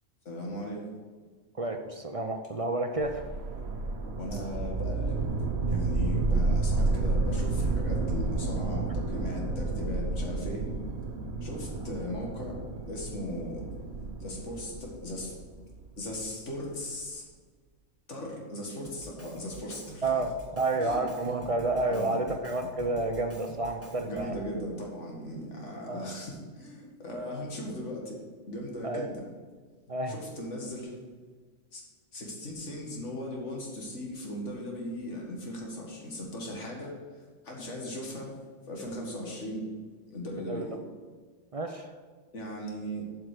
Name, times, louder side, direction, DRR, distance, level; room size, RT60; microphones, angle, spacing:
voice 1, 0.3-0.8 4.2-5.3 5.7-10.7 11.4-12.6 12.9-13.7 14.2-15.3 16.0-17.2 18.1-20.1 20.8-21.0 21.3-21.5 21.9-22.3 24.1-28.2 28.5-29.2 30.1-31.0 31.7-31.8 32.1-37.0 37.4-38.4 38.7-39.7 40.1-40.8 42.3-43.1, left 1 dB, 65° left, -1 dB, 2.2 m, -38 dB
voice 2, 1.6-3.2 20.0-24.4 25.9-26.1 28.8-29.1 29.9-30.1 40.5-40.7 41.5-41.9, right 2 dB, 40° right, 5 dB, 0.5 m, -30 dB
sound 1, 3.0-16.1, right 3 dB, 55° right, 1.2 m, -31 dB
Drum kit, 18.8-24.5, right 1 dB, 10° left, 1.7 m, -47 dB
7.8 x 6.0 x 6.7 m, 1.5 s
omnidirectional pair, 1.3 m